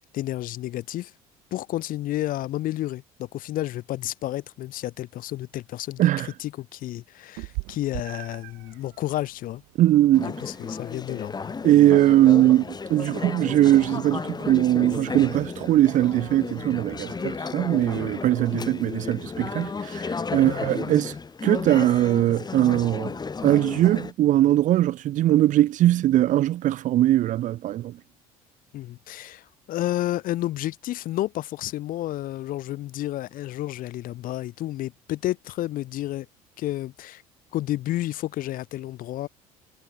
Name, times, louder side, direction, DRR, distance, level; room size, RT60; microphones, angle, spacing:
voice 1, 0.1-1.1 1.5-9.6 10.2-11.5 18.5-18.8 20.5-20.6 28.7-36.3 36.6-37.2 37.5-39.3, left 14 dB, 50° left, 1.1 m, -31 dB
voice 2, 6.0-6.3 9.8-10.3 11.6-21.1 21.4-23.1 23.4-27.9, right 13 dB, 45° right, 0.6 m, -20 dB
Meow, 7.4-17.0, right 33 dB, 60° right, 7.3 m, -44 dB
Conversation / Chatter, 10.1-24.1, left 5 dB, 20° left, 1.7 m, -33 dB
figure-of-eight pair, 60°, 19 cm